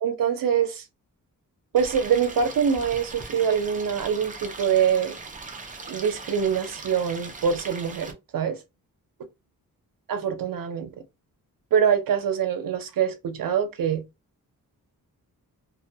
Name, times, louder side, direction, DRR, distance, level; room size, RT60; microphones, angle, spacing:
voice 1, 0.0-0.8 1.7-5.2 5.9-8.6 10.1-10.9 11.7-14.0, right 7 dB, 70° right, 0.6 m, -24 dB
Stream, 1.8-8.1, right 3 dB, 20° right, 0.5 m, -40 dB
2.3 x 2.1 x 2.7 m
wide cardioid pair, 130°, 36 cm